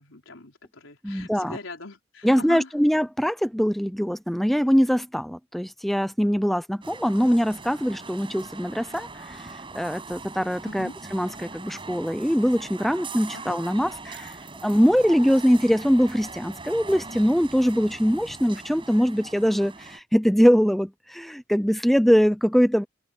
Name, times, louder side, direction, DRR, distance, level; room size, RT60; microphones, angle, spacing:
voice 1, 0.0-2.7 10.6-10.9 13.3-13.6, left 3 dB, 85° left, 4.6 m, -40 dB
voice 2, 1.0-1.6 2.2-9.5 9.7-14.3 14.6-22.8, equal, ahead, 0.5 m, -22 dB
sound 1, 6.8-20.0, right 3 dB, 25° right, 6.0 m, -41 dB
open air
head